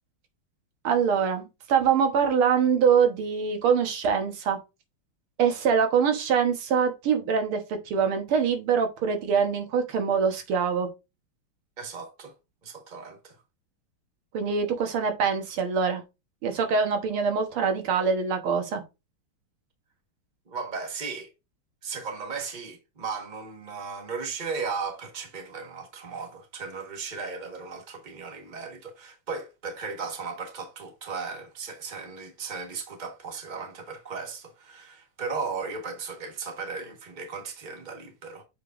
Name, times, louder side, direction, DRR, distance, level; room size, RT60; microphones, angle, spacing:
voice 1, 0.8-4.6 5.4-10.9 14.3-16.0 16.4-18.8, right 6 dB, 90° right, 2.1 m, -24 dB
voice 2, 11.8-12.3 12.6-13.4 20.5-21.3 21.8-38.4, right 5 dB, 25° right, 1.3 m, -36 dB
7.5 x 5.0 x 2.5 m
omnidirectional pair, 2.3 m